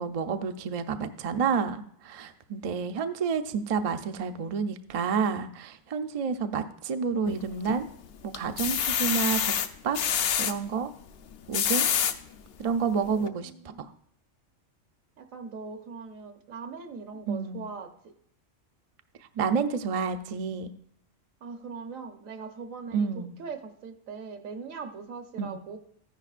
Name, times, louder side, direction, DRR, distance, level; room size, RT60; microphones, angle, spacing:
voice 1, 0.0-7.9 8.2-9.5 9.8-10.0 10.4-10.9 11.5-11.9 12.6-13.5 17.3-17.6 19.4-20.7 22.9-23.4 25.4-25.6, right 6 dB, 55° right, 8 dB, 0.4 m, -29 dB
sound 1, 7.3-7.9 8.3-10.5 11.3-12.2 12.8-12.9 13.2-13.3, left 8 dB, 60° left, 0.7 m, -27 dB
voice 2, 13.0-13.9 15.2-17.9 21.4-25.8, right 5 dB, 80° right, 7 dB, 1.3 m, -41 dB
14.0 x 10.5 x 2.5 m, 0.64 s
omnidirectional pair, 1.3 m